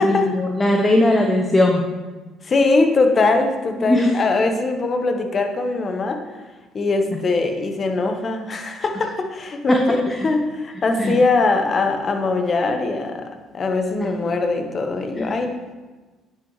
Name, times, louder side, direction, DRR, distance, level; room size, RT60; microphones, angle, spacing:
voice 1, 0.0-1.9 3.8-4.1 9.7-9.8 10.1-10.2 11.0-11.1 15.2-15.3, left 1 dB, 20° left, 1 dB, 1.0 m, -19 dB
voice 2, 2.4-6.2 6.7-9.8 10.2-13.3 13.5-15.7, left 3 dB, 40° left, 5 dB, 1.2 m, -21 dB
10.0 x 5.8 x 3.2 m, 1.3 s
hypercardioid pair, 55°, 0 cm